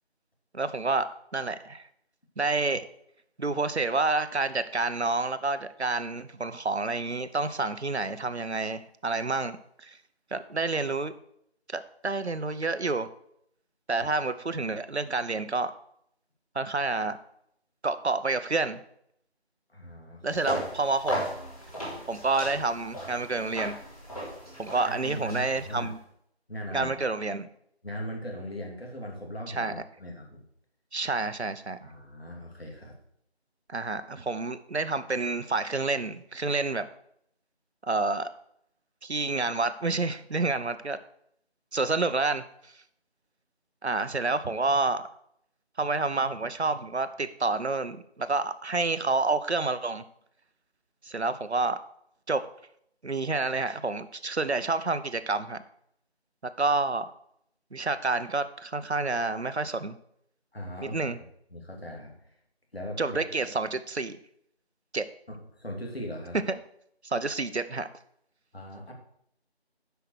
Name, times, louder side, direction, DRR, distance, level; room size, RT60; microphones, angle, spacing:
voice 1, 0.5-1.9 2.4-2.9 3.4-10.0 10.3-11.1 11.7-13.1 13.9-15.7 16.5-17.2 17.8-18.8 20.2-21.2 22.1-23.8 24.6-26.0 26.7-27.5 29.5-29.8 30.9-31.8 33.7-36.9 37.8-38.3 39.0-41.0 41.7-42.4 43.8-45.1 45.8-50.0 51.0-51.8 52.3-52.5 53.0-55.6 56.6-57.1 57.7-59.9 60.8-61.2 63.0-64.2 64.9-65.0 66.5-66.6 67.0-67.9, right 3 dB, 80° right, 12 dB, 0.9 m, -29 dB
voice 2, 19.7-20.4 24.8-25.9 26.5-26.9 27.8-30.4 31.8-32.9 60.5-61.1 61.5-62.1 62.7-63.2 65.3-66.4 68.5-68.9, equal, 65° left, 0 dB, 2.8 m, -39 dB
sound 1, 20.3-25.9, equal, 35° left, 3.3 m, -36 dB
8.2 x 5.7 x 6.3 m, 0.71 s
figure-of-eight pair, 175°, 33 cm